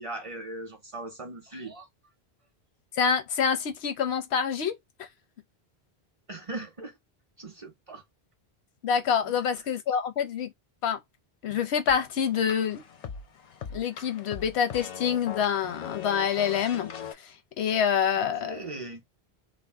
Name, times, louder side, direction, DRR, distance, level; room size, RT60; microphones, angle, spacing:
voice 1, 0.0-1.9 6.3-6.9 7.4-8.0 9.3-9.4 18.3-19.0, right 2 dB, 40° right, 0.6 m, -39 dB
voice 2, 3.0-4.7 8.8-10.5 10.8-11.0 11.4-12.8 13.7-16.9 17.6-18.7, left 7 dB, 85° left, 0.9 m, -26 dB
sound 1, 11.9-17.1, left 7 dB, 55° left, 0.5 m, -40 dB
2.6 x 2.1 x 3.4 m
omnidirectional pair, 1.1 m